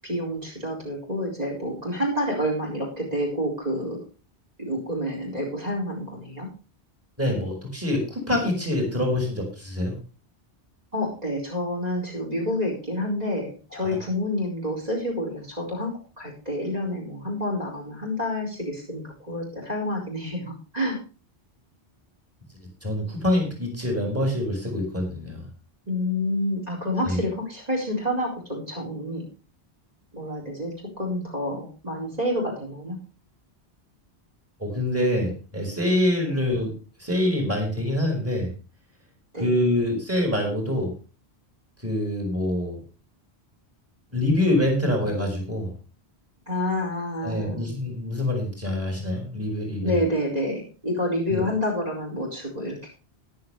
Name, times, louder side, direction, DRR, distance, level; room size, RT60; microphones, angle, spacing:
voice 1, 0.0-4.0 4.6-6.5 10.9-21.0 25.9-29.2 30.1-33.0 36.3-36.4 39.3-39.6 46.5-47.7 49.8-52.9, left 1 dB, 35° right, 1 dB, 4.8 m, -28 dB
voice 2, 7.2-9.9 13.7-14.0 22.8-25.4 27.0-27.2 34.6-36.7 37.0-38.5 39.4-40.9 41.8-42.8 44.1-45.7 47.2-50.0 51.3-51.4, left 1 dB, 10° right, 1 dB, 4.9 m, -25 dB
14.0 x 11.5 x 3.3 m, 0.35 s
omnidirectional pair, 1.1 m